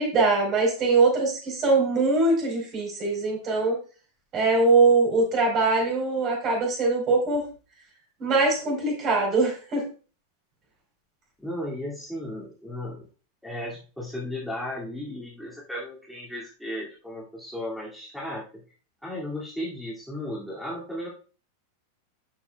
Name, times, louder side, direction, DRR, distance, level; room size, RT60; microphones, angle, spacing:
voice 1, 0.0-3.8 4.3-7.4 8.2-9.9, right 3 dB, 30° right, 0 dB, 4.4 m, -22 dB
voice 2, 11.4-13.0 13.4-18.4 19.0-21.1, left 1 dB, ahead, -6 dB, 2.5 m, -35 dB
11.5 x 7.2 x 2.4 m, 0.37 s
figure-of-eight pair, 90°, 0 cm